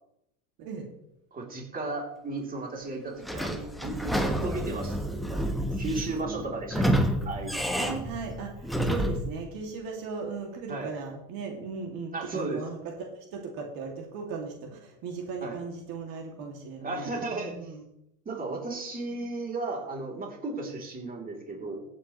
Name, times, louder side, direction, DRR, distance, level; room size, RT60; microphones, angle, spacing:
voice 1, 1.3-5.5 5.8-7.6 10.7-10.9 12.1-12.6 15.4-15.5 16.8-17.7 18.2-21.8, right 2 dB, 20° right, 0 dB, 3.2 m, -35 dB
Sliding door / Squeak, 3.2-9.3, equal, ahead, 1.1 m, -29 dB
voice 2, 6.0-6.8 7.7-17.8 19.1-19.2, right 4 dB, 55° right, 1 dB, 2.4 m, -38 dB
15.5 x 8.6 x 3.1 m, 0.81 s
supercardioid pair, 120°, 40 cm